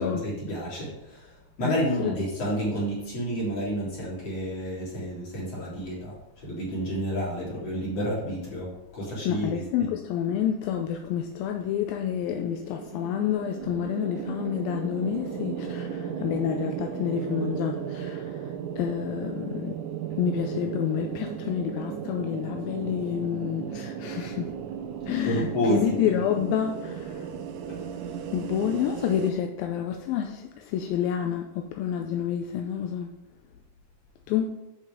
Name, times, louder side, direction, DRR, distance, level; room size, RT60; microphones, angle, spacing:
voice 1, 0.0-9.9 25.2-26.0 27.7-28.3, equal, 40° left, -7 dB, 4.3 m, -30 dB
voice 2, 1.6-2.1 9.3-19.8 20.2-24.6 25.1-27.3 28.3-33.1 34.3-34.4, left 9 dB, 80° left, 4 dB, 2.3 m, -29 dB
sound 1, 11.5-29.3, right 8 dB, 80° right, 1.9 m, -35 dB
8.5 x 7.5 x 3.6 m, 0.97 s
omnidirectional pair, 4.5 m